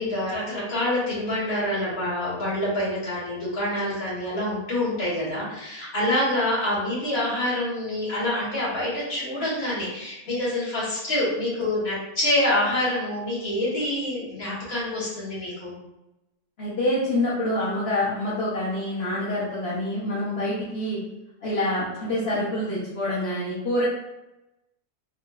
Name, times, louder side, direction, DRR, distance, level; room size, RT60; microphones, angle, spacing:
voice 1, 0.0-15.7, left 1 dB, 75° left, -9 dB, 1.9 m, -26 dB
voice 2, 16.6-21.0 21.4-23.9, left 1 dB, 50° left, -9 dB, 0.9 m, -26 dB
3.8 x 2.0 x 2.3 m, 0.95 s
omnidirectional pair, 1.5 m